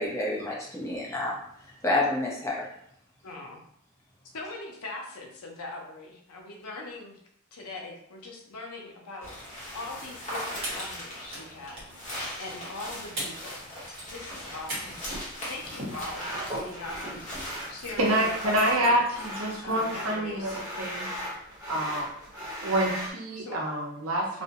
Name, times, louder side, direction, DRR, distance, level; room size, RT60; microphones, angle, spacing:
voice 1, 0.0-1.4 1.8-2.6, left 2 dB, 15° left, -4 dB, 0.6 m, -28 dB
voice 2, 3.2-3.6 4.3-7.2 7.5-9.3 9.7-11.9 12.4-13.6 14.1-14.9 15.5-19.2 19.6-20.9 23.4-23.6, left 2 dB, 85° left, 0 dB, 0.6 m, -41 dB
sound 1, 9.2-18.7, equal, 35° left, 1.0 m, -40 dB
sound 2, 9.2-9.6 9.9-10.0 10.6-11.4 11.7-12.0 12.8-12.9 13.2-13.5 13.8-19.8, right 1 dB, 45° right, 1.1 m, -41 dB
sound 3, 14.1-23.1, equal, 15° right, 1.0 m, -39 dB
voice 3, 18.0-21.1 21.7-22.1 22.6-24.4, right 1 dB, 70° right, -2 dB, 0.7 m, -27 dB
2.5 x 2.1 x 2.8 m, 0.70 s
head